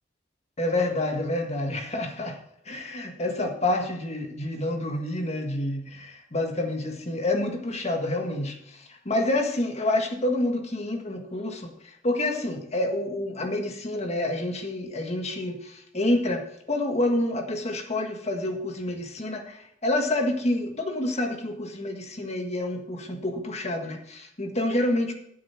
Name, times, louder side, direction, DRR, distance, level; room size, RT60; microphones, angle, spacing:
voice 1, 0.6-2.4 2.7-25.1, left 1 dB, 35° left, 4 dB, 1.6 m, -28 dB
9.0 x 8.1 x 6.0 m, 0.72 s
head